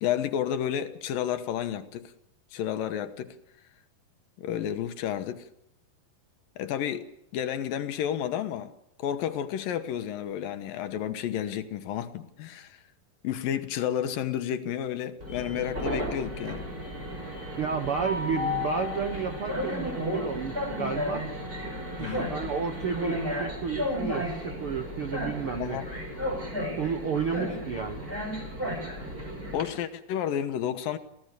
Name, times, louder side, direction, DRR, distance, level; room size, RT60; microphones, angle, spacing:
voice 1, 0.0-2.1 2.5-3.4 4.4-5.5 6.6-7.1 7.3-8.7 9.0-12.8 13.2-16.7 22.0-22.3 25.6-25.9 29.5-31.0, left 10 dB, 75° left, 2.8 m, -31 dB
Train, 15.2-29.6, left 1 dB, 15° right, 6.1 m, -33 dB
voice 2, 17.6-21.3 22.0-25.8 26.8-28.0, right 6 dB, 65° right, 1.4 m, -31 dB
27.0 x 17.0 x 6.7 m
omnidirectional pair, 4.2 m